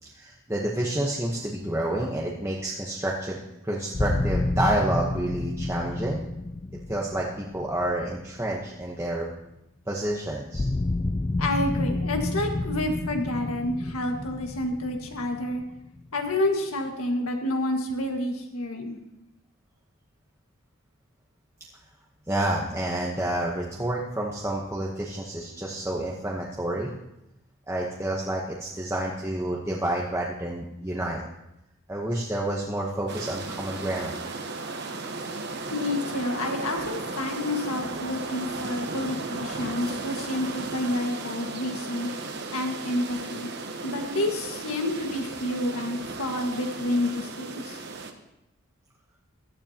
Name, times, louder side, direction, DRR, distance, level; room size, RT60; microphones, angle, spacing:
voice 1, 0.0-6.2 6.9-9.3 9.9-10.7 22.3-26.9 27.7-31.2 31.9-34.2, right 1 dB, 10° right, -3 dB, 1.0 m, -29 dB
sound 1, 3.9-8.9 10.5-16.2, left 2 dB, 20° left, 0.3 m, -30 dB
voice 2, 11.4-15.6 16.1-19.0 35.7-42.1 42.5-43.5 43.8-47.8, left 1 dB, 80° left, 3 dB, 1.7 m, -29 dB
sound 2, 33.1-48.1, right 3 dB, 50° right, 1.1 m, -35 dB
16.5 x 12.0 x 2.9 m, 0.88 s
head